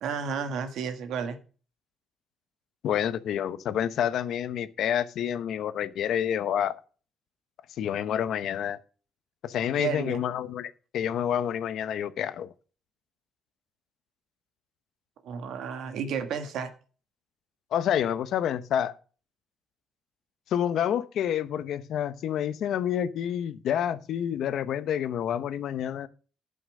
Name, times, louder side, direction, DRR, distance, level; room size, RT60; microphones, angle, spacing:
voice 1, 0.0-1.4 9.8-10.2 15.2-16.7, right 6 dB, 80° right, 1.6 m, -32 dB
voice 2, 2.8-6.8 7.8-8.8 9.4-12.5 17.7-18.9 20.5-26.1, left 9 dB, 75° left, 0.8 m, -28 dB
11.5 x 5.8 x 6.4 m
cardioid pair, 90°, 0 cm